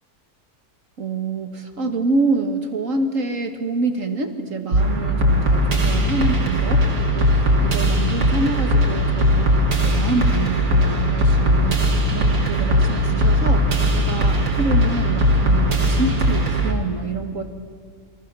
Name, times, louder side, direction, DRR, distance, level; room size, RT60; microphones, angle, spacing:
voice 1, 1.0-13.7 13.9-17.4, right 3 dB, 50° right, 6 dB, 2.0 m, -26 dB
sound 1, 4.7-16.7, equal, 85° right, 3.3 m, -19 dB
29.5 x 23.5 x 6.9 m, 2.1 s
omnidirectional pair, 1.7 m